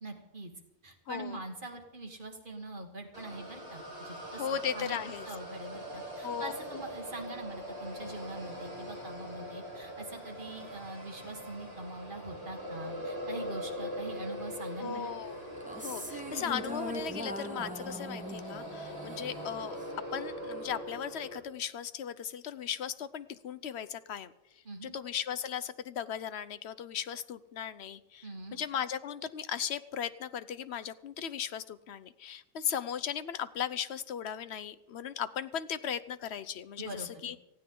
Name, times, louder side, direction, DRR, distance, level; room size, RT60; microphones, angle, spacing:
voice 1, 0.0-0.5 0.8-5.0 5.2-15.1 24.7-24.9 28.2-28.6 36.8-37.4, right 2 dB, 50° right, 3 dB, 2.0 m, -43 dB
voice 2, 1.1-1.4 4.4-5.3 6.2-6.5 14.8-15.4 15.8-19.8 20.1-24.3 24.8-37.4, left 8 dB, 80° left, 14 dB, 1.0 m, -37 dB
sound 1, 3.1-21.4, equal, 35° right, 4.2 m, -42 dB
sound 2, 15.5-20.0, equal, 5° right, 1.5 m, -41 dB
18.5 x 15.5 x 3.9 m, 0.95 s
omnidirectional pair, 1.1 m